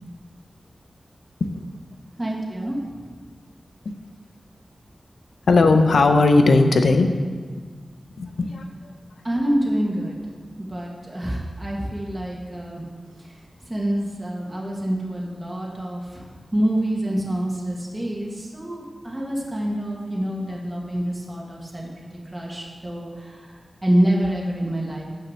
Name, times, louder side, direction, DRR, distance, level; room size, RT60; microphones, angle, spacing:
voice 1, 2.2-2.8 9.2-10.2 10.6-12.9 13.6-21.9 22.3-23.4 23.8-25.0, right 1 dB, 20° right, -3 dB, 1.5 m, -26 dB
voice 2, 5.5-7.1 8.2-8.6, left 3 dB, 90° left, 6 dB, 0.7 m, -17 dB
7.2 x 6.7 x 6.3 m, 1.5 s
wide cardioid pair, 95°, 0 cm